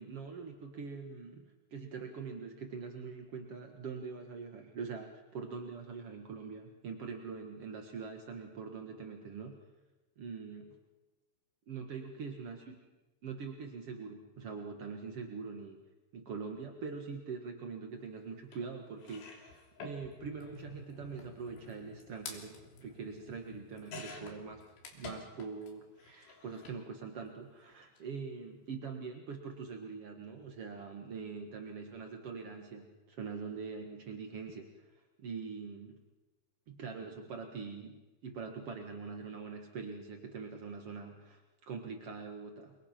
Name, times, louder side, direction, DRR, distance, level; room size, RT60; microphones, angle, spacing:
voice 1, 0.0-1.4 1.7-9.5 10.2-10.8 11.7-12.8 13.2-15.8 16.1-36.0 36.7-42.7, right 5 dB, 65° right, 3 dB, 1.4 m, -43 dB
sound 1, 18.5-18.6 19.0-25.7 26.0-26.8 27.8-28.0 28.2-28.3, left 3 dB, 65° left, 5.3 m, -50 dB
28.5 x 23.5 x 5.9 m, 1.2 s
omnidirectional pair, 5.4 m